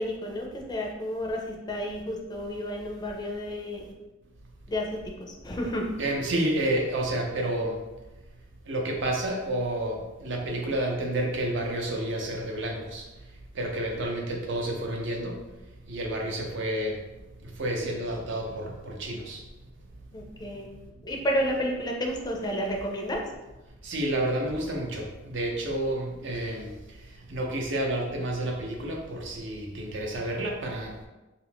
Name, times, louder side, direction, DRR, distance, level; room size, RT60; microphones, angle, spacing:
voice 1, 0.0-3.9 4.7-5.9 20.1-20.7 21.0-23.2, equal, 20° left, 0 dB, 0.4 m, -31 dB
voice 2, 6.0-7.7 8.7-13.0 13.6-15.4 15.9-16.9 17.6-19.4 23.8-26.7 27.3-30.9, right 1 dB, 65° right, 1 dB, 0.6 m, -30 dB
2.8 x 2.4 x 3.4 m, 1.1 s
head